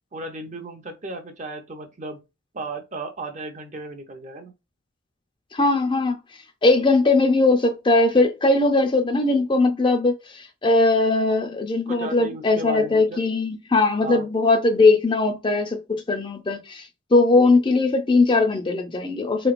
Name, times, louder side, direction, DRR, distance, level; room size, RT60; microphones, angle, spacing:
voice 1, 0.1-2.2 2.5-4.5 11.9-13.2 14.0-14.3, right 2 dB, 35° right, 0.6 m, -35 dB
voice 2, 5.5-6.2 6.6-19.5, left 3 dB, 25° left, 0.4 m, -20 dB
3.1 x 3.0 x 2.5 m
head